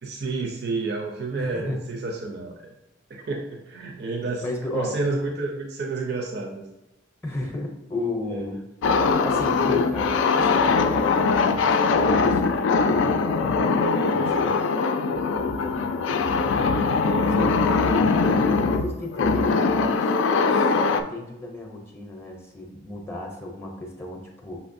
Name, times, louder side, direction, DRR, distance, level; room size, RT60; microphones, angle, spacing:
voice 1, 0.0-2.7 3.1-4.4 4.7-6.7 8.3-8.4 17.4-17.9, right 3 dB, 60° right, 1 dB, 0.5 m, -30 dB
voice 2, 1.4-1.9 4.4-5.0 7.2-8.6 9.2-11.7 12.1-13.4 14.1-14.7 15.3-16.4 17.1-18.4 18.7-20.2 20.5-24.6, left 2 dB, 15° left, 0 dB, 0.6 m, -34 dB
sound 1, 8.8-21.0, left 4 dB, 75° left, 0.3 m, -21 dB
6.0 x 3.1 x 2.6 m, 0.94 s
head